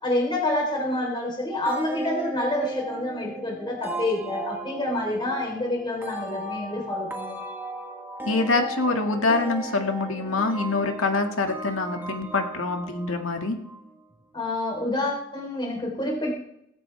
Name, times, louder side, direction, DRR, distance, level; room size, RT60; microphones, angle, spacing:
voice 1, 0.0-7.4 14.3-16.4, left 1 dB, 20° left, -1 dB, 3.7 m, -28 dB
sound 1, 1.7-14.1, right 2 dB, 10° right, 1.6 m, -36 dB
voice 2, 8.2-13.6, left 3 dB, 75° left, 4 dB, 2.0 m, -25 dB
18.0 x 15.5 x 3.4 m, 0.77 s
head